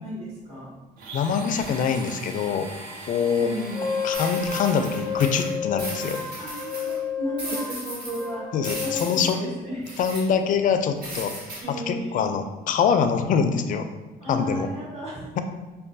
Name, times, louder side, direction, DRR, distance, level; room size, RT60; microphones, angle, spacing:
voice 1, 0.0-0.7 3.4-3.9 6.4-8.4 8.8-9.8 11.6-12.3 14.2-15.2, equal, 35° right, -7 dB, 1.0 m, -34 dB
Domestic sounds home sounds, 1.0-5.4, right 3 dB, 60° right, 0.6 m, -40 dB
voice 2, 1.1-2.7 3.1-3.5 4.0-6.2 8.5-9.4 10.0-11.3 11.7-13.9 14.3-14.7, left 6 dB, 50° left, 7 dB, 0.4 m, -24 dB
Wind instrument woodwind instrument, 3.7-9.3, left 6 dB, 5° left, 0.6 m, -31 dB
sound 1, 4.1-7.0 7.4-8.3 8.6-9.3 9.9-10.2 11.0-11.6, right 1 dB, 85° right, 1.3 m, -36 dB
5.3 x 2.2 x 2.6 m, 1.2 s
cardioid pair, 110°, 17 cm